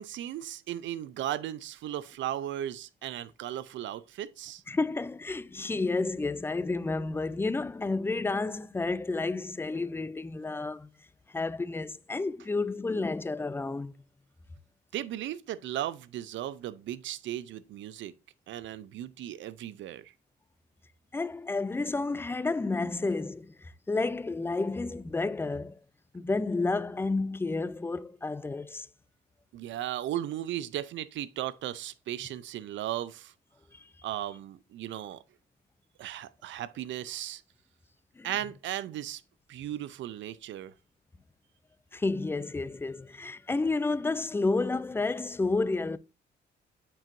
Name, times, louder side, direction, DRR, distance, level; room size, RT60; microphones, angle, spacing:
voice 1, 0.0-4.6 14.9-18.1 18.5-20.1 29.5-33.3 34.0-35.2 36.0-37.4 38.2-39.2 39.5-40.7, right 12 dB, 70° right, 0.5 m, -36 dB
voice 2, 4.7-10.9 11.3-13.9 21.1-25.8 26.1-28.9 33.7-33.9 38.2-38.3 41.9-46.0, left 3 dB, 10° left, 0.3 m, -31 dB
8.7 x 4.6 x 2.6 m
cardioid pair, 90°, 20 cm